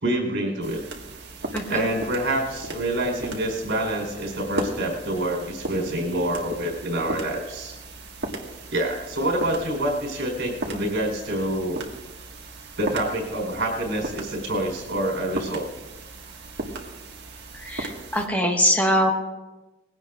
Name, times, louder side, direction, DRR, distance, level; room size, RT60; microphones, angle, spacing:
voice 1, 0.0-0.8 1.7-7.8 8.7-11.8 12.8-15.7, right 1 dB, 80° right, -2 dB, 4.1 m, -27 dB
sound 1, 0.6-18.3, right 2 dB, 60° right, 1.8 m, -37 dB
voice 2, 1.5-1.8 17.6-19.1, equal, 10° left, 1 dB, 1.5 m, -22 dB
20.0 x 16.5 x 2.5 m, 1.1 s
head